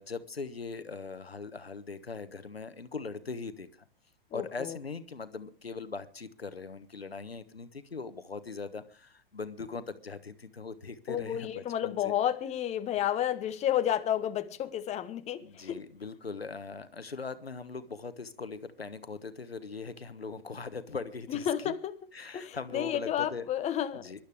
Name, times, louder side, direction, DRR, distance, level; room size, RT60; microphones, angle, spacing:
voice 1, 0.0-3.8 4.3-12.1 15.4-21.7 22.1-23.5 23.9-24.2, left 4 dB, 85° left, 1.3 m, -40 dB
voice 2, 4.3-4.8 11.1-15.8 21.3-21.9 22.3-24.2, left 10 dB, 25° left, 1.2 m, -31 dB
24.5 x 12.0 x 3.5 m
figure-of-eight pair, 100°, 30 cm